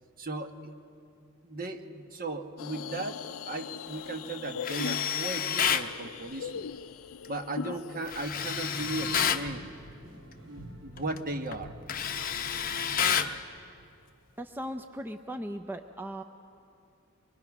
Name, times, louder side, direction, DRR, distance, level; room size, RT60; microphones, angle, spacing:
voice 1, 0.2-0.7 1.4-6.7 7.3-9.6 10.5-11.7, right 2 dB, 45° right, 6 dB, 1.1 m, -37 dB
sound 1, 2.6-8.3, left 7 dB, 75° left, 0.4 m, -40 dB
Tools, 4.6-5.9 8.1-9.5 11.0-11.2 11.5-13.4, left 8 dB, 45° left, 0.7 m, -29 dB
sound 2, 8.8-13.9, equal, 85° right, 3.9 m, -50 dB
voice 2, 14.4-16.2, equal, 10° right, 6 dB, 0.5 m, -38 dB
25.0 x 21.5 x 6.0 m, 2.7 s
head